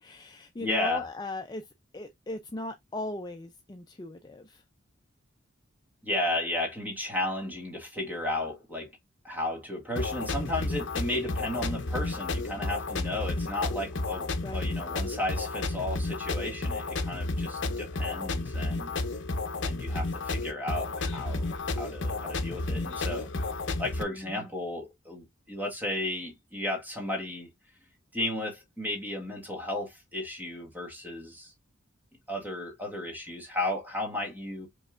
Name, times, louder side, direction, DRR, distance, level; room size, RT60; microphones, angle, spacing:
voice 1, 0.0-4.6 14.4-14.7 24.1-24.5, left 2 dB, 20° left, 0.4 m, -39 dB
voice 2, 0.6-1.0 6.0-8.9 9.2-18.9 19.6-23.3 23.8-27.5 28.1-31.5 32.3-34.7, left 1 dB, 10° right, 1.5 m, -34 dB
sound 1, 10.0-24.0, left 2 dB, 60° left, 0.7 m, -32 dB
5.3 x 3.2 x 2.4 m
head